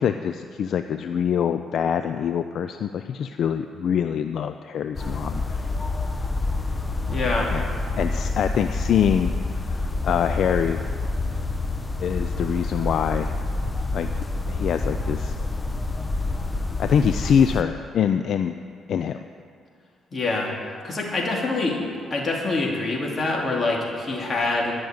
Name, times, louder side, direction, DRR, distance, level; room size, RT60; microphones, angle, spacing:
voice 1, 0.0-5.6 7.5-7.6 8.0-9.3 9.6-10.8 12.0-13.3 13.9-14.1 14.5-15.4 16.8-18.5 18.9-19.2, left 8 dB, 65° left, 8 dB, 0.4 m, -24 dB
sound 1, 5.0-17.6, left 2 dB, 20° left, 0.8 m, -27 dB
voice 2, 7.1-7.5 20.1-20.5 20.8-21.8 22.1-24.7, left 3 dB, 35° left, -1 dB, 2.7 m, -25 dB
12.0 x 6.2 x 8.9 m, 2.4 s
cardioid pair, 90°, 0 cm